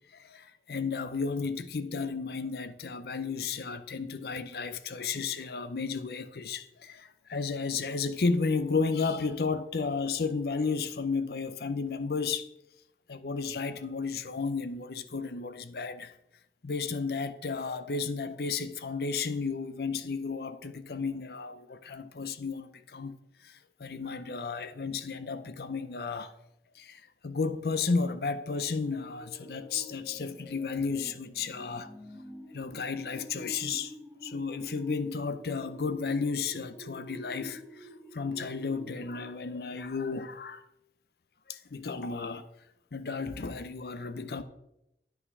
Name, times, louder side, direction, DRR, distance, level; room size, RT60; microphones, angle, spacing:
voice 1, 0.1-12.5 13.1-16.1 16.6-23.2 23.4-26.3 26.8-31.9 32.5-33.9 34.2-40.6 41.5-42.5 42.9-44.4, left 4 dB, 60° left, 0.6 m, -33 dB
sound 1, 28.6-39.2, left 1 dB, 5° right, 1.4 m, -47 dB
9.8 x 5.7 x 4.8 m
head